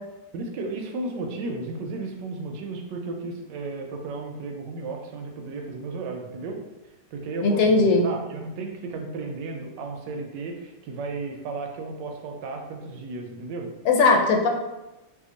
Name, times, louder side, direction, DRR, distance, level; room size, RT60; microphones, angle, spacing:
voice 1, 0.3-6.6 7.1-13.7, right 3 dB, 80° right, 2 dB, 1.2 m, -34 dB
voice 2, 7.4-8.1 13.8-14.5, left 3 dB, 80° left, 2 dB, 1.3 m, -18 dB
2.8 x 2.6 x 3.7 m, 1.0 s
omnidirectional pair, 1.9 m